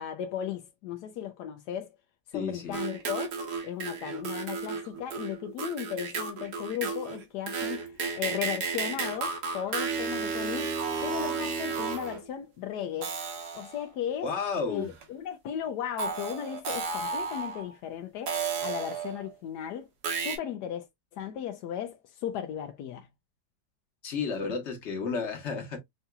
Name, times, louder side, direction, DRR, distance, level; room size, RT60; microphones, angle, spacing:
voice 1, 0.0-1.9 2.3-3.4 3.6-13.2 13.5-14.3 14.7-19.9 20.1-20.9 21.1-23.1, left 10 dB, 80° left, 1.2 m, -36 dB
voice 2, 2.3-2.8 14.2-14.9 24.0-25.8, left 5 dB, 45° left, 1.5 m, -32 dB
sound 1, 2.7-12.3 13.0-13.9 15.0-15.1 16.0-17.7 18.3-19.3 20.0-20.4, right 5 dB, 75° right, 1.7 m, -33 dB
5.7 x 2.8 x 2.2 m
omnidirectional pair, 1.7 m